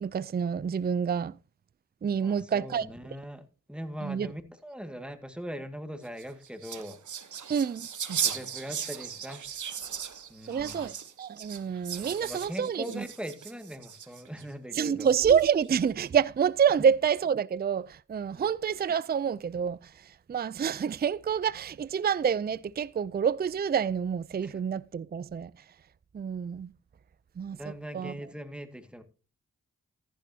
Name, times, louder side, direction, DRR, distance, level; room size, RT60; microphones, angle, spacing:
voice 1, 0.0-1.3 2.0-2.8 4.0-4.3 7.5-7.9 10.5-10.9 11.2-13.0 14.7-19.8 20.3-25.5 26.1-26.7 27.4-27.6 27.9-28.1, right 7 dB, 30° right, 0.4 m, -27 dB
voice 2, 2.2-7.0 8.2-9.5 10.3-10.8 12.2-15.1 18.3-18.5 24.4-24.6 27.5-29.0, equal, 5° right, 1.9 m, -41 dB
sound 1, 6.0-14.4 15.0-15.7, right 8 dB, 70° right, 1.2 m, -37 dB
14.0 x 11.0 x 2.8 m
cardioid pair, 55°, 31 cm